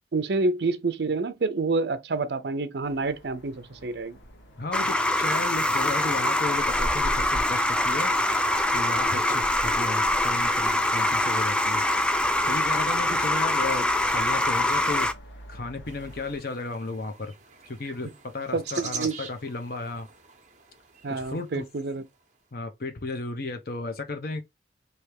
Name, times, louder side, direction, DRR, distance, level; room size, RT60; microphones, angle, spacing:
voice 1, 0.1-4.2 9.3-9.4 18.5-19.2 21.0-22.0, right 3 dB, 65° right, 0.6 m, -28 dB
sound 1, 2.8-16.4, equal, 90° left, 1.4 m, -42 dB
voice 2, 4.6-8.1 8.7-11.8 12.5-15.1 15.5-17.3 17.7-20.1 21.1-21.6 22.5-24.4, left 3 dB, 50° left, 0.7 m, -34 dB
sound 2, 4.7-15.1, left 1 dB, 5° left, 0.3 m, -24 dB
sound 3, 15.9-22.1, right 6 dB, 40° right, 0.9 m, -43 dB
3.4 x 2.7 x 4.6 m
head